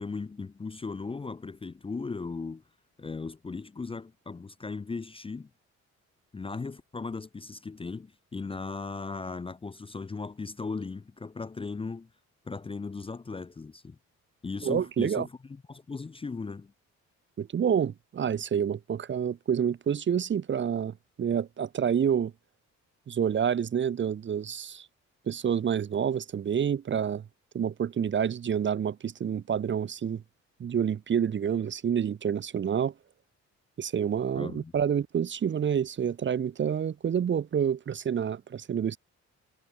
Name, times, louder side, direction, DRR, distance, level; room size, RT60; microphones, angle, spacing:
voice 1, 0.0-2.6 3.0-5.5 6.3-12.1 12.5-14.0 14.4-16.7 34.3-34.7, left 4 dB, 20° left, 0.6 m, -37 dB
voice 2, 14.6-15.3 17.4-22.3 23.1-24.9 25.3-27.2 27.5-30.2 30.6-32.9 33.8-39.0, right 8 dB, 40° right, 0.8 m, -28 dB
cardioid pair, 90°, 30 cm